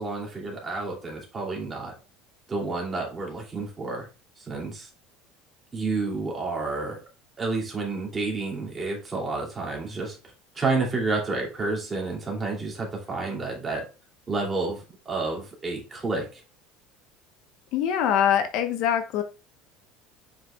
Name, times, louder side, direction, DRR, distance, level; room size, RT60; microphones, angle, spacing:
voice 1, 0.0-1.9 2.5-4.1 4.4-4.9 5.7-7.0 7.4-10.2 10.5-13.8 14.3-16.4, right 3 dB, 15° right, -2 dB, 2.7 m, -30 dB
voice 2, 17.7-19.2, left 9 dB, 50° left, 7 dB, 1.0 m, -23 dB
7.7 x 5.9 x 2.3 m, 0.32 s
cardioid pair, 170°, 0 cm